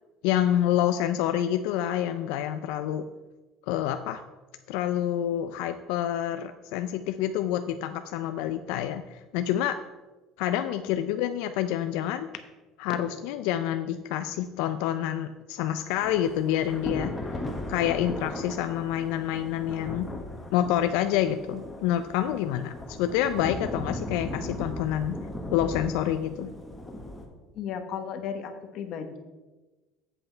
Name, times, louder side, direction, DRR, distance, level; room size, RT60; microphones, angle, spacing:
voice 1, 0.2-3.0 3.7-4.2 4.7-9.8 10.4-12.3 12.8-17.3 17.7-20.1 20.5-22.7 23.0-25.2 25.5-26.5, left 11 dB, 75° left, 9 dB, 0.4 m, -27 dB
Thunder / Rain, 15.9-27.3, left 1 dB, 10° left, 1.0 m, -37 dB
voice 2, 27.6-29.2, left 7 dB, 45° left, 7 dB, 1.0 m, -35 dB
7.8 x 7.8 x 4.4 m, 1.2 s
cardioid pair, 160°, 0 cm